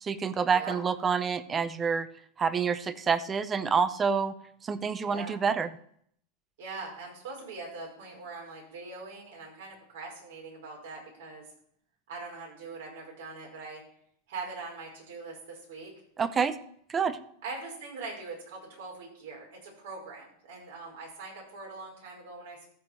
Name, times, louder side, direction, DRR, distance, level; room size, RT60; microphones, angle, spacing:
voice 1, 0.0-2.1 2.4-4.3 4.6-5.7 16.2-16.6 16.9-17.2, right 6 dB, 20° right, 14 dB, 0.7 m, -27 dB
voice 2, 5.0-5.4 6.6-11.4 12.1-13.8 14.3-15.9 17.4-22.7, right 3 dB, 75° right, -1 dB, 5.4 m, -42 dB
14.0 x 5.1 x 5.8 m, 0.66 s
supercardioid pair, 130°, 0 cm